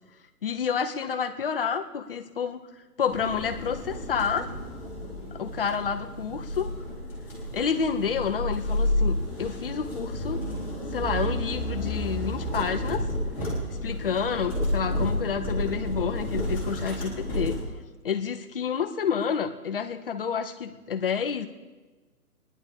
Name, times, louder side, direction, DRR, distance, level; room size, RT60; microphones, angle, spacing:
voice 1, 0.4-2.6 3.0-4.5 5.3-6.7 7.5-10.5 10.9-13.1 13.8-17.6 18.0-21.5, left 7 dB, 35° left, 7 dB, 0.7 m, -29 dB
sound 1, 3.1-17.6, equal, 5° right, 2.4 m, -31 dB
24.0 x 10.5 x 3.6 m, 1.2 s
hypercardioid pair, 165°, 47 cm